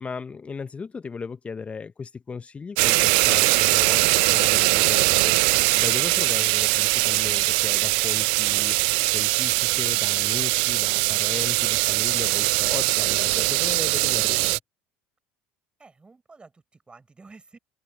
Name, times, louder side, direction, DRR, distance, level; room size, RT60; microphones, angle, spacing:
voice 1, 0.0-14.6, left 5 dB, 25° left, 0.6 m, -36 dB
sound 1, 2.8-14.6, right 29 dB, 70° right, 0.4 m, -21 dB
voice 2, 15.8-17.6, right 3 dB, 20° right, 6.2 m, -50 dB
hypercardioid pair, 75°, 5 cm